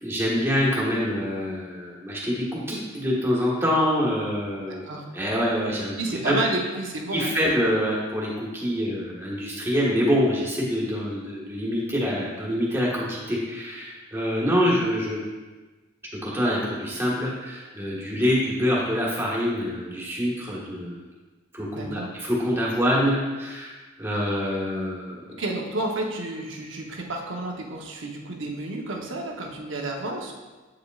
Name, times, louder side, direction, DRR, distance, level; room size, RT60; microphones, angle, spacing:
voice 1, 0.0-4.8 5.1-5.9 6.2-6.4 7.1-15.2 16.2-21.1 21.5-25.4, equal, 10° right, -5 dB, 1.3 m, -25 dB
voice 2, 5.9-7.3 21.7-22.1 25.3-30.3, right 2 dB, 65° right, 1 dB, 0.9 m, -30 dB
8.2 x 4.9 x 2.4 m, 1.2 s
head